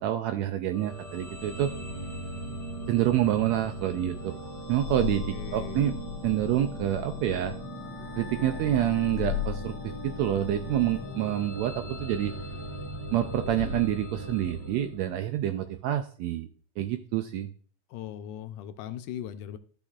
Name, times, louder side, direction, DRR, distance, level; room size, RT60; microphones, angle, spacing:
voice 1, 0.0-1.7 2.9-4.3 4.7-6.0 6.2-7.5 8.2-9.8 10.0-12.3 13.1-16.5 16.8-17.5, right 12 dB, 85° right, 7 dB, 1.6 m, -27 dB
sound 1, 0.7-15.4, left 3 dB, 15° left, 1.1 m, -37 dB
voice 2, 5.3-5.8 17.9-19.6, left 10 dB, 80° left, 9 dB, 2.1 m, -39 dB
14.0 x 6.1 x 2.4 m, 0.43 s
omnidirectional pair, 3.7 m